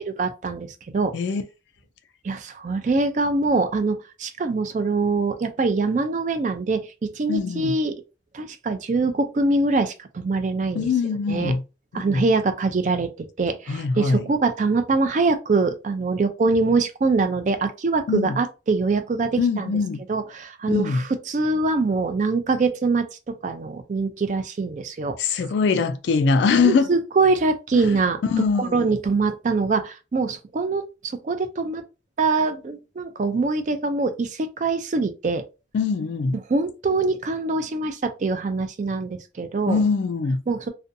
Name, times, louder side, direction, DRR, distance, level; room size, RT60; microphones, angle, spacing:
voice 1, 0.2-1.1 2.2-8.0 8.3-10.9 11.3-11.6 11.9-19.7 20.1-25.2 26.6-28.2 28.6-30.8 31.2-31.8 32.2-35.4 36.5-39.8 40.5-40.7, right 3 dB, 40° right, 0.3 m, -23 dB
voice 2, 7.3-7.8 10.8-11.6 11.9-12.2 13.7-14.2 18.1-18.4 19.4-20.0 20.7-21.0 25.2-26.9 28.2-28.8 35.7-36.4 39.7-40.4, left 4 dB, 70° left, 0.3 m, -22 dB
2.5 x 2.2 x 2.6 m
head